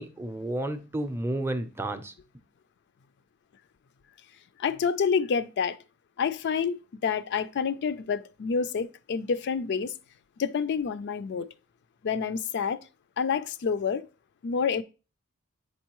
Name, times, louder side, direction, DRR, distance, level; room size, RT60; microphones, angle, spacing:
voice 1, 0.0-2.1, right 1 dB, 10° right, 0.6 m, -31 dB
voice 2, 4.6-5.8 6.2-9.9 10.4-11.5 12.0-12.8 13.2-14.0 14.4-14.8, left 6 dB, 55° left, 0.4 m, -28 dB
8.6 x 5.4 x 3.0 m
head